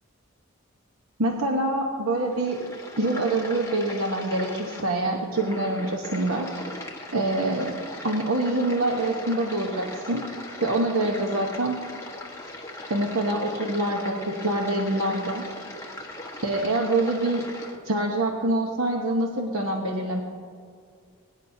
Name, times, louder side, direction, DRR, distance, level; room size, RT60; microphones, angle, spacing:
voice 1, 1.2-2.6 3.0-6.5 7.1-7.7 8.0-10.2 10.6-11.8 12.9-15.4 16.4-17.4 17.8-20.2, right 2 dB, 75° right, 0 dB, 1.1 m, -25 dB
sound 1, 2.2-17.8, left 1 dB, 15° left, 1.2 m, -39 dB
23.0 x 10.5 x 2.8 m, 2.2 s
head